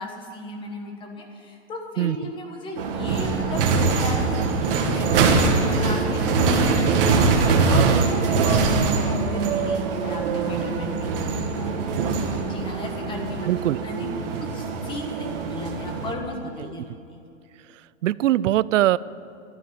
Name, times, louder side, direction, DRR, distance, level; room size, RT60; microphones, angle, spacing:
voice 1, 0.0-7.3 7.7-8.2 8.4-12.0 12.5-13.5 13.8-14.1 14.5-16.8 17.1-17.2, left 2 dB, 15° left, 3 dB, 1.2 m, -35 dB
sound 1, 2.8-16.1, right 4 dB, 50° right, 1.8 m, -23 dB
voice 2, 7.7-8.1 8.4-8.5 13.4-13.8 18.0-19.0, right 14 dB, 85° right, 20 dB, 0.5 m, -21 dB
12.0 x 9.2 x 8.8 m, 2.6 s
hypercardioid pair, 160°, 37 cm